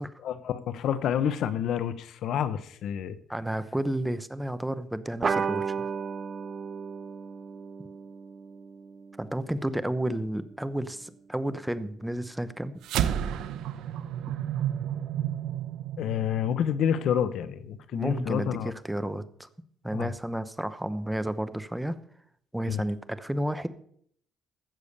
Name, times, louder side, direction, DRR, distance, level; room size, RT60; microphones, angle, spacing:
voice 1, 0.2-3.1 16.0-18.7 19.9-20.1 22.7-22.8, left 9 dB, 70° left, 14 dB, 0.9 m, -28 dB
voice 2, 3.3-5.9 9.2-12.7 17.9-19.5 19.8-22.0 22.5-23.7, right 1 dB, 5° right, 12 dB, 0.9 m, -31 dB
sound 1, 5.2-10.1, right 5 dB, 35° right, 0.8 m, -34 dB
sound 2, 12.8-17.5, right 10 dB, 80° right, 0.8 m, -31 dB
15.5 x 7.0 x 6.7 m, 0.64 s
cardioid pair, 115°, 0 cm